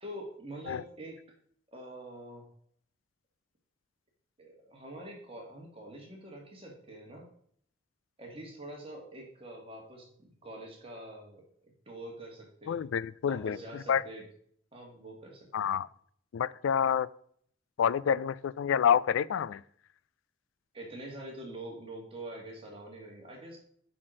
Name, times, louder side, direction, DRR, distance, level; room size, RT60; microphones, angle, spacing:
voice 1, 0.0-1.2 1.7-2.5 4.4-7.3 8.2-12.8 13.2-14.3 14.7-15.7 20.7-23.6, right 1 dB, 30° right, 1.9 m, -45 dB
voice 2, 12.7-13.6 13.9-14.0 15.5-15.9 16.3-17.1 17.8-19.6, left 8 dB, 85° left, 0.3 m, -28 dB
6.1 x 5.8 x 6.3 m
head